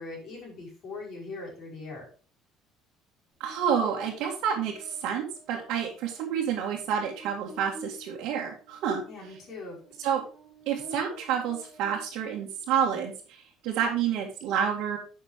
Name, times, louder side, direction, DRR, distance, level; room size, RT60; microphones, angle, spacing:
voice 1, 0.0-2.1 9.1-9.8, left 3 dB, 35° left, -4 dB, 5.6 m, -40 dB
Buzz, 3.4-12.9, equal, 20° right, 2.8 m, -51 dB
voice 2, 3.4-9.0 10.0-10.2 10.7-15.0, right 8 dB, 65° right, -2 dB, 1.9 m, -29 dB
10.5 x 6.5 x 3.7 m, 0.38 s
cardioid pair, 170°, 0 cm